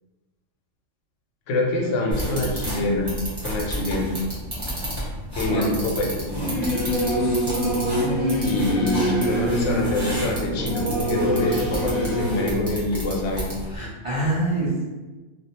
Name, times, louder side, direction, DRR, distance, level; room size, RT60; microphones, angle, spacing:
voice 1, 1.5-3.1 3.4-4.1 5.3-6.6 8.4-13.4, left 2 dB, 75° left, -1 dB, 0.9 m, -25 dB
voice 2, 2.0-2.6 5.5-5.8 13.7-14.8, right 2 dB, 60° right, -9 dB, 0.3 m, -26 dB
sound 1, 2.1-13.8, equal, 25° right, 0.8 m, -32 dB
Singing / Musical instrument, 6.3-12.5, equal, 40° left, 0.7 m, -25 dB
2.4 x 2.1 x 2.8 m, 1.2 s
omnidirectional pair, 1.3 m